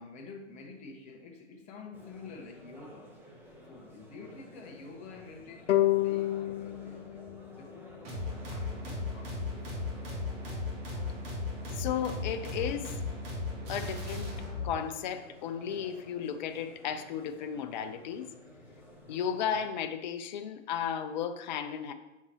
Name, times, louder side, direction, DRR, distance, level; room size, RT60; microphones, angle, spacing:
voice 1, 0.0-3.2 3.7-7.8 8.5-9.4, left 4 dB, 20° left, 1 dB, 1.0 m, -48 dB
sound 1, 1.9-19.6, equal, 5° right, 0.6 m, -53 dB
sound 2, 5.7-9.0, left 15 dB, 80° left, 0.5 m, -31 dB
sound 3, 8.0-14.7, left 2 dB, 35° right, 1.8 m, -36 dB
voice 2, 11.7-12.9 13.7-14.4 14.6-18.3 19.1-21.9, left 8 dB, 40° left, 8 dB, 0.5 m, -34 dB
6.4 x 5.9 x 3.0 m, 1.0 s
hypercardioid pair, 135°, 37 cm